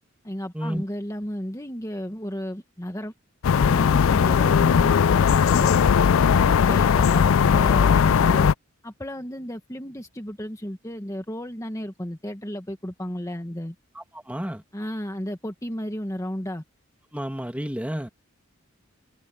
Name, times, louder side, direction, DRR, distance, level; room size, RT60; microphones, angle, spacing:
voice 1, 0.2-3.1 3.4-5.7 6.2-8.5 8.8-13.7 14.7-16.6, equal, 15° left, 1.5 m, -33 dB
sound 1, 3.4-8.5, left 7 dB, 85° left, 0.4 m, -18 dB
voice 2, 14.0-14.6 17.1-18.1, equal, 5° right, 2.0 m, -31 dB
head